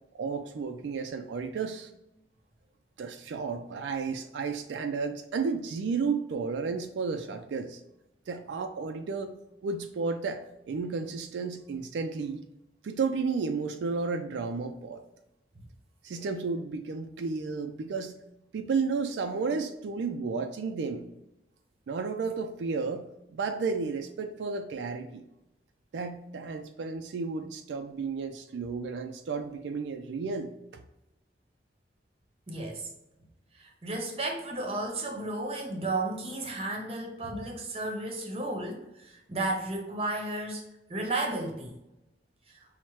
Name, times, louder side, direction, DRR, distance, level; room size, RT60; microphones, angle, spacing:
voice 1, 0.1-1.9 3.0-7.8 8.3-9.4 9.6-12.4 12.8-15.0 16.0-18.1 18.5-21.1 21.9-25.2 25.9-30.8, right 4 dB, 85° right, 7 dB, 0.3 m, -32 dB
voice 2, 32.5-32.9 33.5-40.6 40.9-41.8 42.5-42.6, right 2 dB, 35° right, 2 dB, 0.7 m, -33 dB
5.6 x 2.1 x 3.0 m, 0.90 s
head